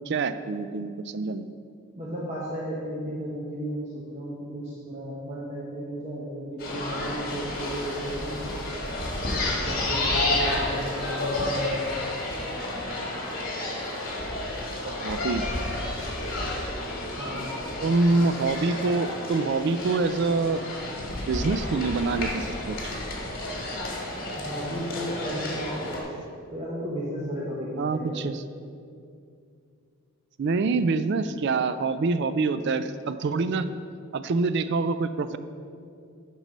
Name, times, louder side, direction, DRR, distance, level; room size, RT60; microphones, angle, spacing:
voice 1, 0.1-1.5 14.8-15.5 17.8-20.6 21.3-22.8 27.8-28.4 30.4-33.7 34.1-35.4, right 3 dB, 50° right, 12 dB, 0.3 m, -26 dB
voice 2, 1.9-8.4 9.2-12.0 17.2-17.5 24.3-26.0 26.5-28.3, equal, 30° right, -6 dB, 1.1 m, -34 dB
sound 1, 6.6-26.0, left 2 dB, 40° left, 1.7 m, -31 dB
9.0 x 5.4 x 5.3 m, 2.4 s
head